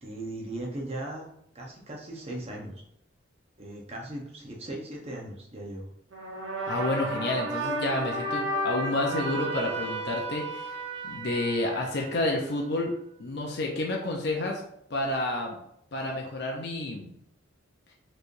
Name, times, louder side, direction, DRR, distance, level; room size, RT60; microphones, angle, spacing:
voice 1, 0.0-1.3 1.5-2.7 3.6-5.9, right 1 dB, 30° right, -1 dB, 0.9 m, -38 dB
sound 1, 6.1-12.5, right 1 dB, 70° right, 0.9 m, -33 dB
voice 2, 6.7-10.8 11.1-12.9 13.2-14.6 14.9-15.6 15.9-17.1, left 2 dB, 55° left, 0 dB, 0.6 m, -30 dB
4.6 x 3.2 x 2.6 m, 0.74 s
head